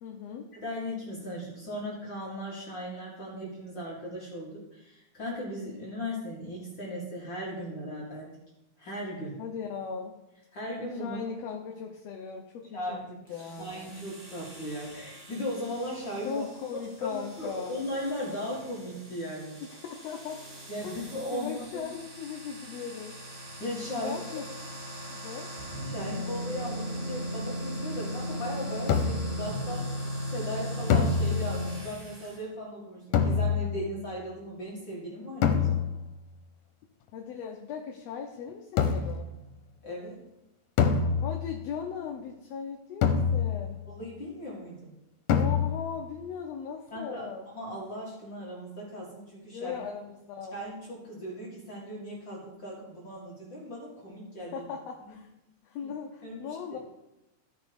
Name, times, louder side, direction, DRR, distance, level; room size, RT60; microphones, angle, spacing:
voice 1, 0.0-0.5 9.4-10.2 11.0-13.0 13.3-13.7 16.2-17.8 19.6-20.4 20.8-21.0 21.3-23.2 24.0-24.5 25.1-25.5 37.1-39.3 41.2-43.8 45.3-47.5 49.5-50.6 54.5-55.3 55.6-56.8, left 6 dB, 70° left, 2 dB, 1.8 m, -38 dB
voice 2, 0.5-8.3 8.8-9.4 10.5-11.2 12.7-13.1 13.6-16.4 17.0-19.6 20.7-21.9 23.6-24.2 25.8-35.9 39.8-40.2 43.9-44.9 46.9-49.8 50.5-54.7 56.2-56.8, equal, 40° left, -5 dB, 2.5 m, -37 dB
sound 1, 13.3-32.4, equal, 35° right, 2.6 m, -38 dB
sound 2, 28.9-29.4 30.9-31.8 33.1-33.9 35.4-36.1 38.8-39.3 40.8-41.6 43.0-43.8 45.3-46.0, left 6 dB, 85° left, 2.3 m, -26 dB
14.5 x 5.1 x 5.2 m, 0.93 s
omnidirectional pair, 3.3 m